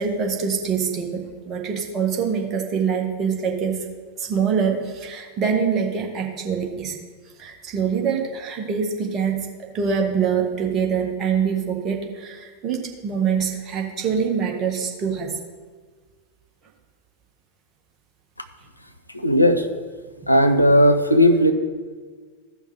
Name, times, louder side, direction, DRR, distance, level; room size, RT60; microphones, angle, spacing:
voice 1, 0.0-3.8 4.2-7.0 7.4-15.4, right 6 dB, 30° right, 1 dB, 1.6 m, -24 dB
voice 2, 19.1-19.7 20.3-21.5, equal, 85° left, 7 dB, 0.7 m, -16 dB
15.0 x 5.8 x 4.3 m, 1.5 s
figure-of-eight pair, 90°, 0 cm